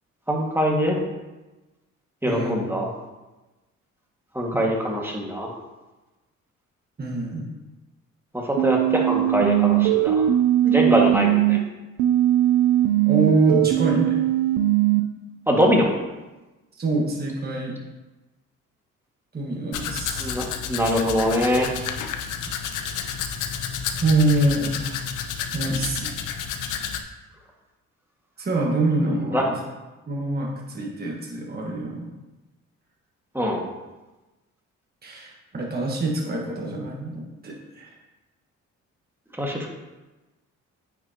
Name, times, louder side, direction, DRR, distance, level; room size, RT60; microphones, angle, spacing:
voice 1, 0.3-1.0 2.2-2.9 4.3-5.6 8.3-10.3 10.6-11.6 15.5-15.9 20.2-21.7 29.3-29.5 33.3-33.7 39.3-39.7, equal, 5° right, -1 dB, 1.9 m, -23 dB
voice 2, 7.0-7.5 13.1-14.2 16.7-17.7 19.3-20.4 24.0-25.0 25.5-26.1 28.4-29.6 30.1-32.2 35.0-37.9, right 2 dB, 30° right, -2 dB, 1.6 m, -25 dB
sound 1, 8.6-11.6 12.0-15.0, right 13 dB, 90° right, 0.6 m, -20 dB
Domestic sounds home sounds, 19.7-27.0, left 7 dB, 75° left, 0.8 m, -30 dB
9.2 x 6.0 x 2.9 m, 1.1 s
supercardioid pair, 65°, 31 cm